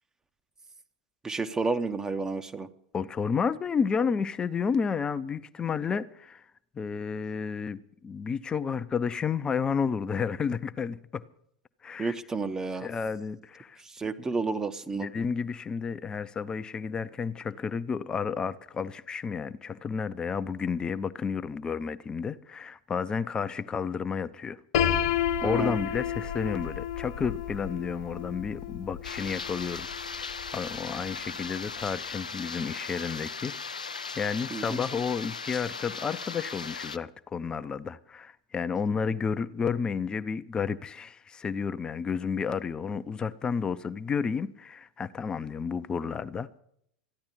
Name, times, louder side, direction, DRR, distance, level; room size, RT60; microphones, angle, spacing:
voice 1, 1.2-2.7 12.0-12.9 13.8-15.1 25.4-25.8 34.5-34.8, right 3 dB, 15° right, 0.8 m, -31 dB
voice 2, 2.9-6.4 6.7-11.2 11.8-12.2 12.8-13.8 14.9-24.6 25.0-33.9 34.1-46.5, left 6 dB, 20° left, 0.6 m, -31 dB
Piano, 24.7-30.6, left 9 dB, 55° left, 1.3 m, -31 dB
sound 1, 29.0-37.0, left 5 dB, 80° left, 0.5 m, -38 dB
14.0 x 10.5 x 8.3 m
figure-of-eight pair, 85°, 4 cm